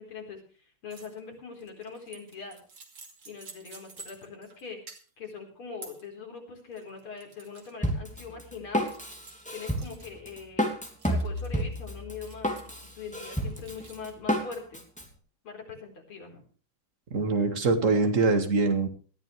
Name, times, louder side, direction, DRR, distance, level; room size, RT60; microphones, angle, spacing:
voice 1, 0.0-2.6 3.2-4.8 5.2-9.0 9.5-10.7 11.1-14.8 15.4-16.5, left 5 dB, 85° left, 2 dB, 5.2 m, -42 dB
sound 1, 0.9-1.2 1.5-4.6 4.9-5.3 5.8-6.1 6.6-7.7 8.2-8.3 8.9-10.0 11.0-11.7 12.3-12.9 13.5-14.1, right 4 dB, 65° right, 3.4 m, -50 dB
Drum kit, 7.8-15.0, equal, 5° left, 2.8 m, -30 dB
voice 2, 17.1-18.9, right 3 dB, 40° right, 6 dB, 2.3 m, -24 dB
20.0 x 13.5 x 3.3 m, 0.39 s
omnidirectional pair, 2.3 m